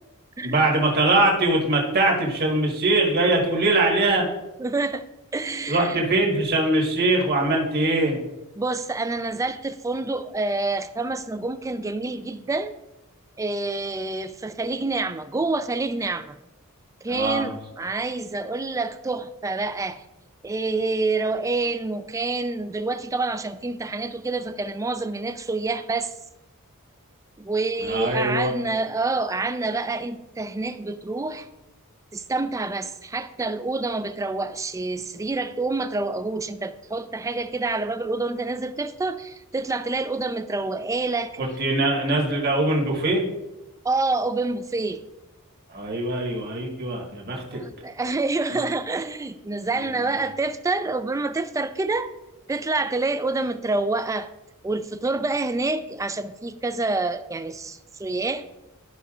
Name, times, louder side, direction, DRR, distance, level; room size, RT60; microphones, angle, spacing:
voice 1, 0.4-4.3 5.7-8.2 17.1-17.5 27.8-28.6 41.4-43.3 45.7-47.6 48.5-48.6 49.7-50.2, right 2 dB, 45° right, 1.6 m, -22 dB
voice 2, 4.6-5.0 5.3-6.0 8.6-12.7 13.4-16.4 17.0-20.0 20.4-26.1 27.4-31.5 32.1-41.4 43.8-45.0 47.5-52.1 52.5-54.3 54.6-58.5, right 3 dB, 15° right, 0.4 m, -27 dB
12.5 x 5.4 x 2.5 m
head